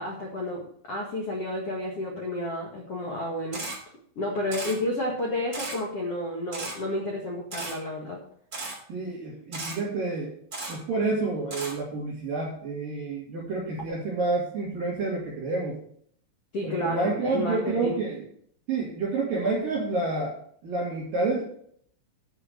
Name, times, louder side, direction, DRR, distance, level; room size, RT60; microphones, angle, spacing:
voice 1, 0.0-3.7 4.1-8.2 16.5-18.0, left 1 dB, 80° left, -1 dB, 1.3 m, -31 dB
Camera, 3.5-3.8 4.5-4.7 5.5-5.8 6.5-6.7 7.5-7.7 8.5-8.7 9.5-9.7 10.5-10.7 11.5-11.7, right 2 dB, 20° right, 2.7 m, -34 dB
voice 2, 8.9-10.3 10.7-15.8 16.6-18.3 18.7-20.3 20.6-21.4, right 3 dB, 50° right, -5 dB, 3.4 m, -29 dB
11.0 x 5.7 x 6.6 m, 0.63 s
omnidirectional pair, 5.9 m